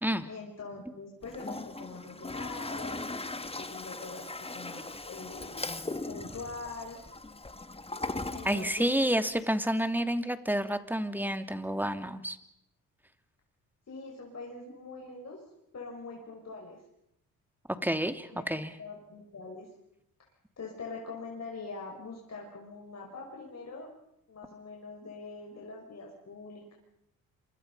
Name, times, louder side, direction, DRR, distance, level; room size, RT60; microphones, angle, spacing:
voice 1, 0.3-5.7 6.1-7.0 8.3-8.9 13.9-15.4 15.7-16.8 18.3-19.7 20.6-23.9 24.3-26.8, left 3 dB, 45° left, -1 dB, 6.1 m, -43 dB
Toilet flush, 1.2-9.4, left 2 dB, 15° left, 1.7 m, -39 dB
voice 2, 8.4-12.4 17.8-18.7, equal, 5° right, 9 dB, 2.7 m, -29 dB
27.0 x 25.5 x 5.6 m, 0.81 s
supercardioid pair, 55°, 36 cm